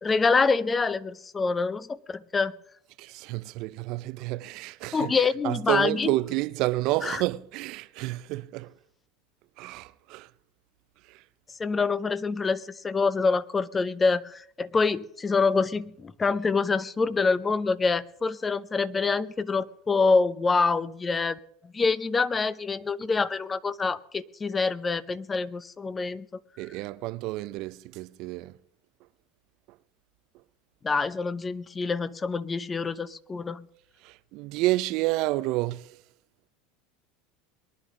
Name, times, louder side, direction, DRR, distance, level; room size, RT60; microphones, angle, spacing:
voice 1, 0.0-2.5 4.9-6.1 7.0-7.2 11.6-21.4 21.7-26.2 30.8-33.6, left 4 dB, 20° left, 0.8 m, -26 dB
voice 2, 3.0-8.7 9.6-10.3 11.0-11.2 26.6-28.6 29.7-29.8 34.0-36.0, right 18 dB, 60° right, 0.5 m, -30 dB
22.5 x 11.0 x 3.8 m
hypercardioid pair, 95°, 0 cm